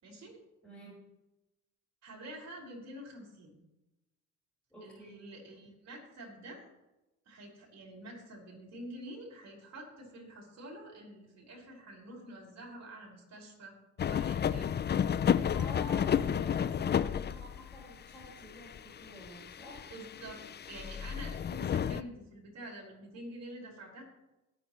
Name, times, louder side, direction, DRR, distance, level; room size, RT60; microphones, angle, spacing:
voice 1, 0.0-0.4 2.0-3.5 4.8-6.6 7.3-13.7 14.0-15.3 19.9-20.4 20.7-24.0, right 1 dB, 60° right, -2 dB, 5.3 m, -48 dB
voice 2, 0.6-1.0 4.7-5.1 15.5-19.9, left 1 dB, 5° left, -8 dB, 5.2 m, -48 dB
sound 1, 14.0-17.8 18.1-22.0, left 8 dB, 35° left, 0.5 m, -32 dB
22.0 x 9.1 x 3.1 m, 0.99 s
cardioid pair, 90°, 30 cm